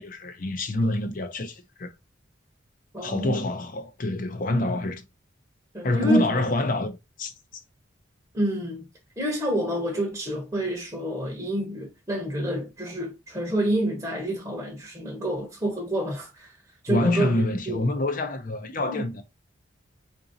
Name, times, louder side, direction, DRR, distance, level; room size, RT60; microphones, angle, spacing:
voice 1, 0.0-1.9 3.0-5.0 5.8-7.3 16.9-19.2, left 1 dB, 45° left, 0.5 m, -26 dB
voice 2, 2.9-3.5 5.7-6.3 8.3-8.9 9.2-16.6 16.8-17.3 17.7-17.9 18.9-19.0, equal, 15° right, 0.8 m, -28 dB
3.9 x 2.6 x 2.6 m
head